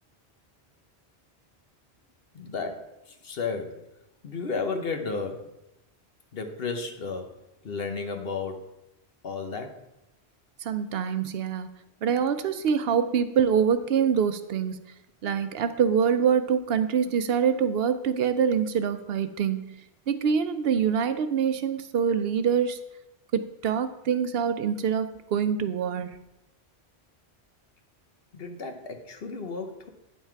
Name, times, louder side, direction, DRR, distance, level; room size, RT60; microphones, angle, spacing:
voice 1, 2.3-3.9 4.2-5.5 6.3-8.7 9.2-9.9 28.3-29.9, left 4 dB, 60° left, 5 dB, 1.1 m, -33 dB
voice 2, 10.6-11.7 12.0-14.8 15.2-19.8 20.1-22.8 23.3-26.1, right 7 dB, 70° right, 11 dB, 0.8 m, -25 dB
9.5 x 5.6 x 4.5 m, 0.90 s
omnidirectional pair, 1.1 m